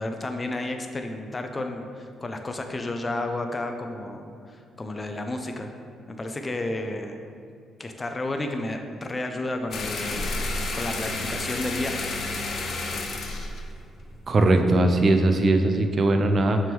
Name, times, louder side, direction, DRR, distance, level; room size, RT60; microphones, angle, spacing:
voice 1, 0.0-5.7 6.1-7.2 7.8-10.4 10.7-12.1, left 2 dB, 25° left, 5 dB, 0.5 m, -32 dB
sound 1, 9.7-14.6, left 2 dB, 60° left, 0.7 m, -31 dB
voice 2, 14.3-16.6, right 2 dB, 40° right, 6 dB, 0.5 m, -20 dB
6.0 x 3.5 x 4.6 m, 2.4 s
cardioid pair, 90°, 0 cm